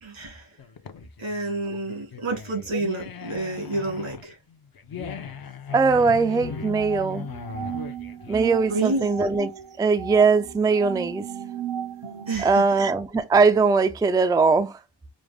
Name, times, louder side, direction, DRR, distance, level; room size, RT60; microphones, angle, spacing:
voice 1, 0.0-0.5 1.2-4.3 8.7-9.1 12.3-12.7, right 2 dB, 85° right, 2.2 m, -29 dB
sound 1, 0.6-9.6, left 6 dB, 50° left, 0.6 m, -38 dB
voice 2, 5.7-7.3 8.3-9.5 9.8-11.2 12.4-14.7, right 4 dB, 10° right, 0.3 m, -20 dB
sound 2, 6.3-12.4, right 9 dB, 60° right, 0.9 m, -36 dB
5.0 x 2.0 x 3.4 m
wide cardioid pair, 110°, 48 cm